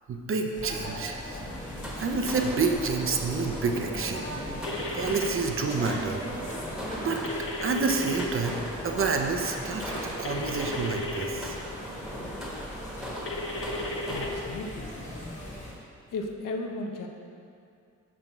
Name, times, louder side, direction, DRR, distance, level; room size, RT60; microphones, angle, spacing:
voice 1, 0.1-1.4 1.9-4.2 4.9-6.2 7.0-7.2 7.6-11.6, right 4 dB, 45° right, 4 dB, 0.6 m, -29 dB
sound 1, 0.5-15.7, equal, 25° left, 1.4 m, -39 dB
sound 2, 1.3-14.4, equal, ahead, 1.2 m, -39 dB
sound 3, 4.6-5.3 7.2-8.3 10.2-11.3 13.3-14.3, left 2 dB, 45° left, 0.7 m, -35 dB
voice 2, 14.1-14.9 16.1-17.1, left 3 dB, 85° left, 2 dB, 0.8 m, -35 dB
6.2 x 5.4 x 4.4 m, 2.4 s
wide cardioid pair, 115°, 31 cm